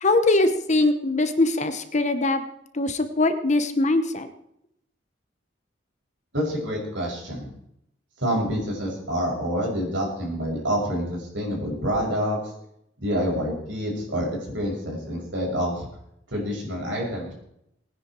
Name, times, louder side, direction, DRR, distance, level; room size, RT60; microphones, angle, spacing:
voice 1, 0.0-2.4 2.7-4.3, left 2 dB, 40° left, 9 dB, 1.1 m, -22 dB
voice 2, 6.3-7.5 8.2-12.4 13.0-15.9 16.3-17.3, equal, 75° right, -2 dB, 6.6 m, -27 dB
20.0 x 10.0 x 4.6 m, 0.77 s
head